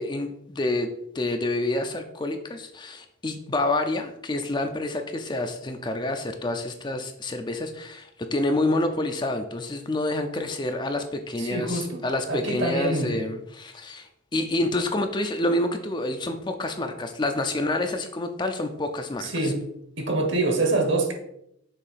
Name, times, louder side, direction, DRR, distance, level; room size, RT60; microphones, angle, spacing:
voice 1, 0.0-19.5, left 2 dB, 20° left, 6 dB, 0.4 m, -28 dB
voice 2, 11.4-13.2 19.2-19.6 20.0-21.1, right 2 dB, 55° right, 2 dB, 1.3 m, -25 dB
6.6 x 2.7 x 5.7 m, 0.77 s
head